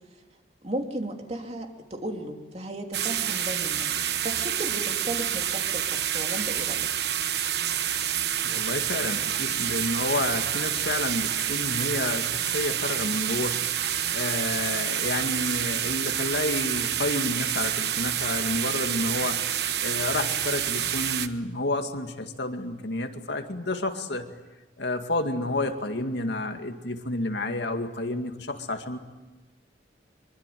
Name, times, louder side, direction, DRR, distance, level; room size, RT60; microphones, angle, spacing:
voice 1, 0.6-6.9, right 1 dB, 35° right, 3 dB, 2.9 m, -35 dB
sound 1, 2.9-21.3, right 10 dB, 65° right, 1.2 m, -28 dB
voice 2, 8.4-13.6 14.1-19.4 19.8-24.3 24.8-29.0, left 2 dB, 70° left, 5 dB, 2.2 m, -30 dB
24.5 x 24.0 x 9.3 m, 1.2 s
head